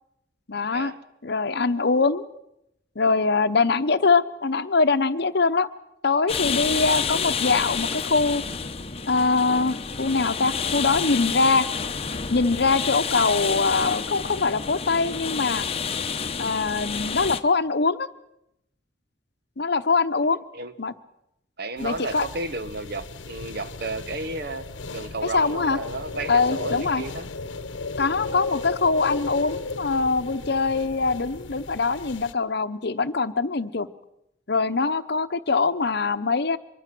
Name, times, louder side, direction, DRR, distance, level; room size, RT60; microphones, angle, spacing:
voice 1, 0.5-0.9 1.2-2.3 3.0-5.7 6.0-8.4 9.1-11.7 12.3-15.7 16.4-18.1 19.6-20.4 20.8-20.9 21.8-22.3 25.3-25.8 26.3-27.0 28.0-33.9 34.5-36.6, left 4 dB, 60° left, 12 dB, 0.9 m, -23 dB
sound 1, 6.3-17.4, left 6 dB, 30° left, 0.9 m, -29 dB
voice 2, 21.6-27.3 28.2-28.4, right 2 dB, 55° right, 11 dB, 1.3 m, -33 dB
sound 2, 21.8-32.3, left 3 dB, 85° left, 1.0 m, -35 dB
24.5 x 23.0 x 6.1 m, 0.81 s
head